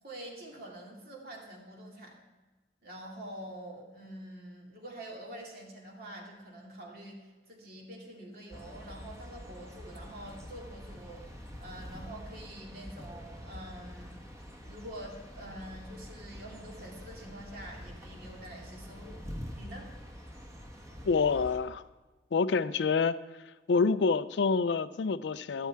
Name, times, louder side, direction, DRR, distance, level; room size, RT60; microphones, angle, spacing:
voice 1, 0.0-2.2 2.8-14.2 14.6-19.2 19.5-19.9, right 1 dB, 55° right, 2.4 m, -46 dB
sound 1, 8.5-21.6, equal, 15° right, 1.3 m, -46 dB
voice 2, 21.1-21.8 22.3-23.2 23.7-25.7, left 5 dB, 80° left, 0.4 m, -27 dB
12.0 x 12.0 x 3.5 m
head